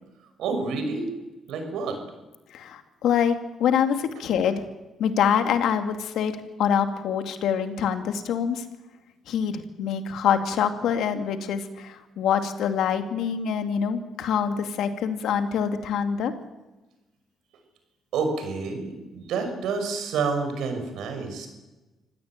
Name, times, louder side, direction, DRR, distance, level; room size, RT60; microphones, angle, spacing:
voice 1, 0.4-1.1 1.5-2.0 18.1-21.5, right 4 dB, 85° right, 6 dB, 5.8 m, -28 dB
voice 2, 2.5-4.6 5.0-6.3 6.6-8.6 9.3-16.3, left 8 dB, 80° left, 7 dB, 2.4 m, -25 dB
25.5 x 16.5 x 8.9 m, 1.1 s
cardioid pair, 90°, 0 cm